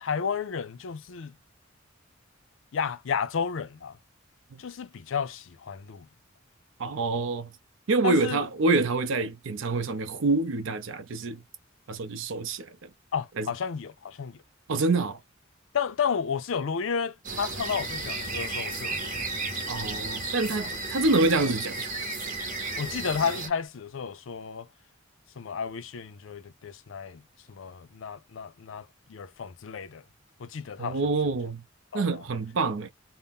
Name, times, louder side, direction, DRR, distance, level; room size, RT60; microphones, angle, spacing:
voice 1, 0.0-1.3 2.7-4.0 4.6-6.1 8.0-8.5 13.1-14.4 15.7-19.2 20.5-20.6 22.8-24.7 25.4-27.2 27.5-30.0 30.4-31.0 31.9-32.2, left 6 dB, 70° left, 0.5 m, -32 dB
voice 2, 6.8-7.5 7.9-11.4 11.9-12.9 13.4-13.5 14.7-15.2 19.7-21.9 30.8-31.6 31.9-32.9, right 3 dB, 70° right, 0.5 m, -26 dB
sound 1, 17.2-23.5, right 5 dB, 40° right, 0.8 m, -34 dB
sound 2, 17.6-23.7, left 4 dB, 20° left, 0.6 m, -39 dB
2.6 x 2.1 x 3.4 m
head